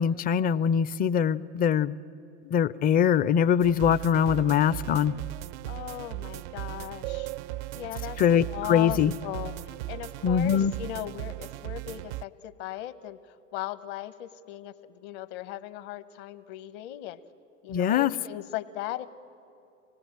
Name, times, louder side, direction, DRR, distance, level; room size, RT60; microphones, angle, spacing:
voice 1, 0.0-1.9 2.5-5.1 8.2-9.1 10.2-10.7 17.7-18.1, left 8 dB, 25° left, 18 dB, 0.5 m, -23 dB
sound 1, 3.6-12.2, right 18 dB, 65° right, 0.5 m, -37 dB
voice 2, 5.7-7.3 7.7-8.2 8.5-9.5 9.9-13.2 13.5-14.7 15.0-17.2 17.6-19.1, left 13 dB, 55° left, 13 dB, 1.1 m, -37 dB
25.5 x 19.0 x 9.0 m, 2.7 s
hypercardioid pair, 90°, 38 cm